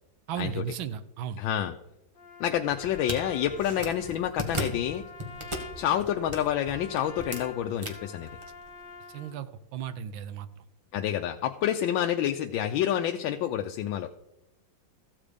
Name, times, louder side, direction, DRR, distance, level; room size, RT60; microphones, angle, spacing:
voice 1, 0.3-1.4 9.1-10.5, right 9 dB, 80° right, 13 dB, 1.5 m, -35 dB
voice 2, 1.4-1.8 2.4-5.0 5.8-8.3 10.9-14.1, left 10 dB, 80° left, 5 dB, 1.3 m, -28 dB
Trumpet, 2.1-9.4, left 4 dB, 55° left, 0.5 m, -47 dB
sound 1, 2.4-8.9, equal, 15° right, 1.3 m, -38 dB
14.5 x 7.4 x 5.0 m, 0.90 s
omnidirectional pair, 2.1 m